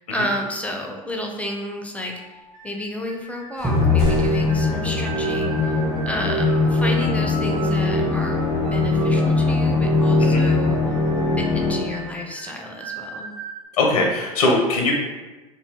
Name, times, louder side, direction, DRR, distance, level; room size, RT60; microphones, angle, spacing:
voice 1, 0.0-8.4 8.7-11.0 11.4-13.3, left 1 dB, 5° left, 2 dB, 0.5 m, -31 dB
sound 1, 2.0-13.6, right 3 dB, 80° right, 0.7 m, -39 dB
sound 2, 3.1-3.3 3.6-5.6, right 4 dB, 60° right, 1.3 m, -32 dB
Musical instrument, 3.6-12.1, left 3 dB, 15° right, 0.8 m, -20 dB
voice 2, 13.7-14.9, left 2 dB, 90° left, 0 dB, 0.6 m, -21 dB
2.7 x 2.6 x 3.5 m, 1.2 s
hypercardioid pair, 85°, 19 cm